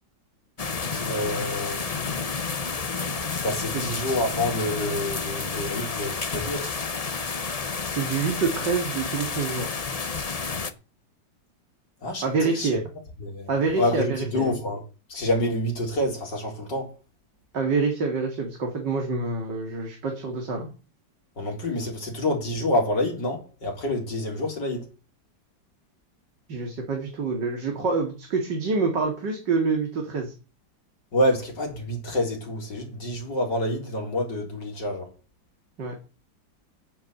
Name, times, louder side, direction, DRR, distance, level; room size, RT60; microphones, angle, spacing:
sound 1, 0.6-10.7, left 4 dB, 45° left, 0.5 m, -30 dB
voice 1, 0.8-1.8 3.4-6.7 12.0-12.8 13.2-13.5 13.8-14.8 15.1-16.9 21.4-24.9 31.1-35.1, left 1 dB, 65° left, 4.6 m, -27 dB
voice 2, 8.0-9.7 12.2-12.8 13.5-14.6 17.5-20.7 26.5-30.3 35.8-35.9, right 4 dB, 65° right, 2.8 m, -26 dB
9.6 x 8.0 x 7.9 m
omnidirectional pair, 2.0 m